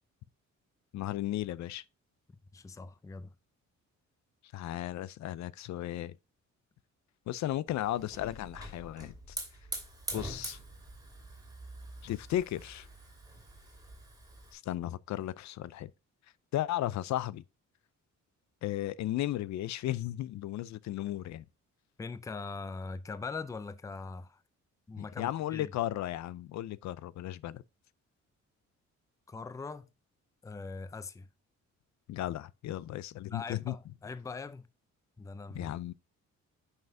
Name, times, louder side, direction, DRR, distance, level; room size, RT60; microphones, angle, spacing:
voice 1, 0.9-1.8 4.5-6.2 7.3-9.4 10.1-10.6 12.0-12.9 14.5-15.9 16.5-17.4 18.6-21.4 25.0-27.6 32.1-33.7 35.5-35.9, left 13 dB, 70° left, 0.5 m, -35 dB
voice 2, 2.5-3.3 22.0-24.4 24.9-25.7 29.3-29.9 30.4-31.3 33.3-34.6 35.2-35.7, left 4 dB, 10° left, 0.4 m, -41 dB
Hiss / Fire, 7.7-14.5, right 2 dB, 10° right, 2.5 m, -44 dB
9.1 x 5.6 x 2.6 m
cardioid pair, 150°, 30 cm